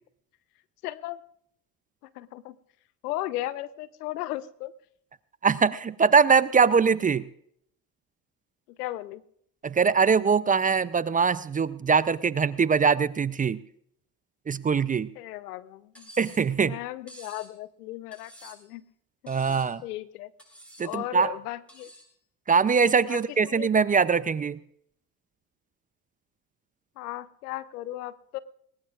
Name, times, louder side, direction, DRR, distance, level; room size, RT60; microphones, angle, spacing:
voice 1, 0.8-1.2 2.0-2.6 3.0-4.7 8.7-9.2 15.2-16.1 16.6-18.9 19.2-20.3 20.8-21.9 23.1-23.7 27.0-28.4, left 15 dB, 85° left, 17 dB, 0.7 m, -36 dB
voice 2, 5.4-7.2 9.6-13.6 14.5-15.1 16.2-16.7 19.3-19.8 20.8-21.3 22.5-24.6, right 5 dB, 20° right, 17 dB, 0.4 m, -22 dB
Cutlery silverware, 15.9-16.5 17.1-17.5 18.1-18.7 19.3-19.8 20.4-20.9 21.7-22.1, right 1 dB, 5° left, 7.2 m, -49 dB
20.5 x 19.5 x 2.4 m, 0.69 s
hypercardioid pair, 70°, 45 cm